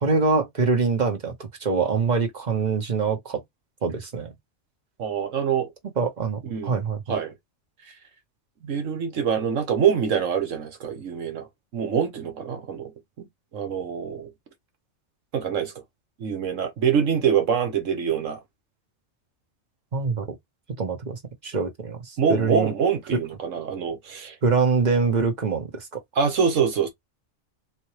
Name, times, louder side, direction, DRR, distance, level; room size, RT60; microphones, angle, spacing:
voice 1, 0.0-3.4 3.8-4.3 6.0-7.2 19.9-20.4 20.7-22.7 24.4-26.0, right 4 dB, 40° right, 1.2 m, -24 dB
voice 2, 5.0-5.7 6.4-6.8 7.1-7.3 8.6-11.5 11.7-12.9 13.5-14.3 15.3-15.7 16.2-18.4 22.2-24.3 26.1-26.9, right 7 dB, 85° right, 1.5 m, -25 dB
4.2 x 3.0 x 3.2 m
omnidirectional pair, 1.3 m